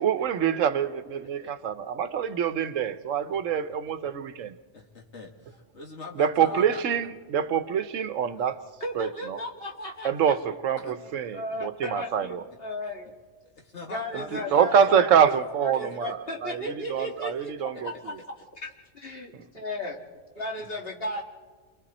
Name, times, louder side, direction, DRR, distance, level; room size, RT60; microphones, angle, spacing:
voice 1, 0.0-4.5 6.2-8.6 9.0-9.4 10.0-12.4 14.5-16.2 16.4-16.6 16.9-17.9, right 8 dB, 85° right, 1.2 m, -25 dB
voice 2, 1.2-1.5 3.3-3.4 4.7-6.8 8.2-8.5 10.8-10.9 13.6-14.9 15.8-16.0, left 2 dB, 65° left, 2.5 m, -43 dB
voice 3, 8.8-10.6 10.8-13.1 13.8-15.4 15.6-18.1 18.6-18.7 19.0-21.2, left 1 dB, 50° left, 2.2 m, -35 dB
29.0 x 22.5 x 4.2 m
omnidirectional pair, 1.3 m